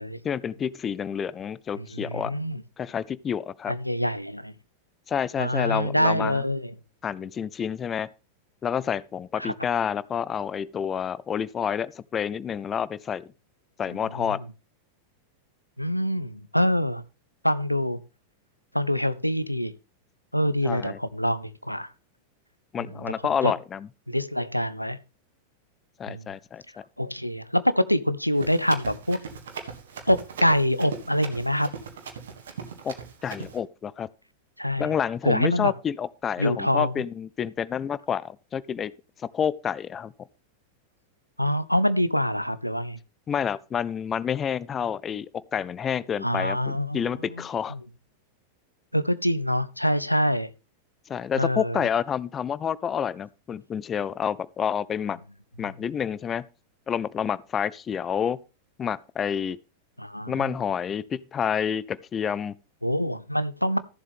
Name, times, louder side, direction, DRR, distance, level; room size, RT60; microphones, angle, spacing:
voice 1, 0.2-2.3 2.8-3.7 5.1-6.4 7.0-8.1 8.6-13.3 13.8-14.4 20.6-21.0 22.7-23.9 26.0-26.6 32.8-32.9 33.2-34.1 34.8-38.9 39.3-40.1 43.3-47.8 51.1-55.2 55.6-56.4 56.9-58.4 58.8-59.6 60.3-62.6, left 8 dB, 25° left, 0.4 m, -29 dB
voice 2, 1.7-2.6 3.7-4.5 5.4-6.7 9.4-9.5 14.0-14.4 15.8-17.0 17.4-18.0 18.7-19.7 20.3-21.9 22.8-23.1 23.4-23.5 24.1-25.0 26.1-26.3 27.0-29.2 30.1-31.7 34.6-34.9 35.2-35.7 36.4-37.0 41.4-43.0 46.2-47.4 47.7-47.8 48.9-50.5 51.3-51.8 55.6-55.7 60.0-60.5 62.8-63.8, equal, 90° left, 0.6 m, -25 dB
Run, 28.3-33.6, right 6 dB, 60° right, 1.7 m, -39 dB
14.0 x 7.3 x 3.5 m
figure-of-eight pair, 90°, 0 cm